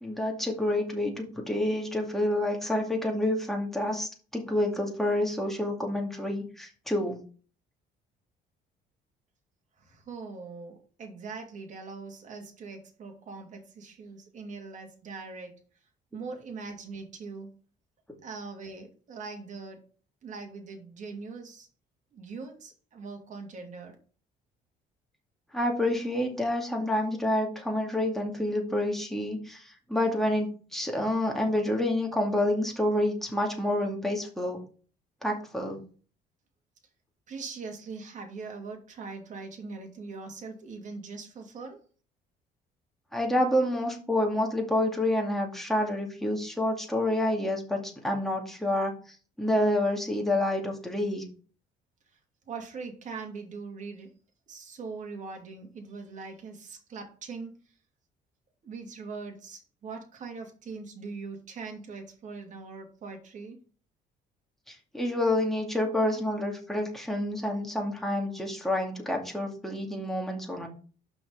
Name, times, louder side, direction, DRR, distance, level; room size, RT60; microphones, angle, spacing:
voice 1, 0.0-7.2 25.5-34.6 35.2-35.8 43.1-48.9 49.4-51.2 64.7-70.7, left 1 dB, ahead, 1 dB, 2.4 m, -28 dB
voice 2, 10.1-15.5 16.1-17.5 18.2-19.8 20.2-21.7 22.2-23.9 37.3-41.8 52.5-54.1 54.5-57.5 58.6-63.6, right 4 dB, 45° right, 2 dB, 2.7 m, -41 dB
6.0 x 5.8 x 5.6 m, 0.39 s
cardioid pair, 110°, 17 cm